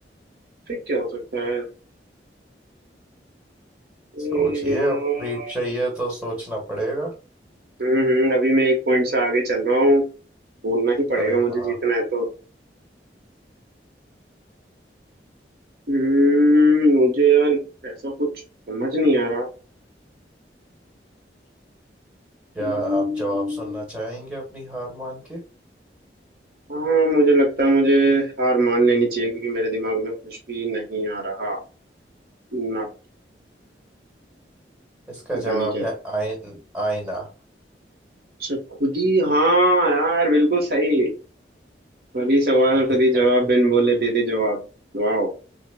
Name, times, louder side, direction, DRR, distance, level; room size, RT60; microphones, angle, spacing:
voice 1, 0.7-1.6 4.1-5.5 7.8-10.0 10.6-12.3 15.9-18.3 18.7-19.5 22.6-23.8 26.7-31.6 32.5-32.9 35.4-35.9 38.4-41.1 42.1-44.6 44.9-45.3, right 1 dB, 60° right, 0 dB, 1.2 m, -20 dB
voice 2, 4.3-7.1 11.1-11.8 22.6-25.4 35.1-37.3 42.9-43.2, right 1 dB, 5° right, -1 dB, 1.6 m, -29 dB
6.1 x 2.4 x 2.3 m, 0.34 s
head